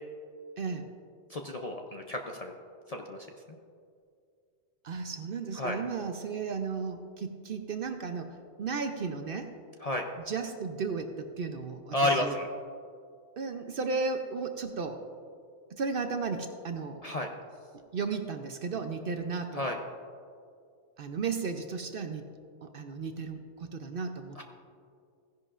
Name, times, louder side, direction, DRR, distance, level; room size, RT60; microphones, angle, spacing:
voice 1, 1.3-2.5 2.9-3.2 5.5-5.8 9.8-10.0 11.9-12.5 17.0-17.3 19.5-19.8 24.4-24.5, left 1 dB, 40° left, 2 dB, 0.6 m, -31 dB
voice 2, 4.8-9.5 10.2-11.9 12.2-12.4 13.4-15.0 15.7-17.0 17.7-19.6 21.0-22.3 22.6-24.4, right 4 dB, 55° right, 6 dB, 0.7 m, -34 dB
16.0 x 10.5 x 2.5 m, 2.3 s
omnidirectional pair, 1.3 m